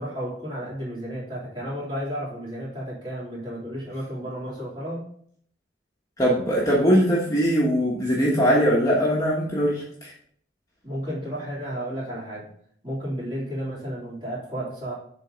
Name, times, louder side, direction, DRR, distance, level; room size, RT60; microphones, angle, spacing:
voice 1, 0.0-5.0 10.8-12.5 12.8-14.9, equal, 25° right, -6 dB, 3.3 m, -32 dB
voice 2, 6.2-10.1, equal, 20° left, -5 dB, 1.3 m, -21 dB
7.5 x 4.1 x 5.1 m, 0.62 s
head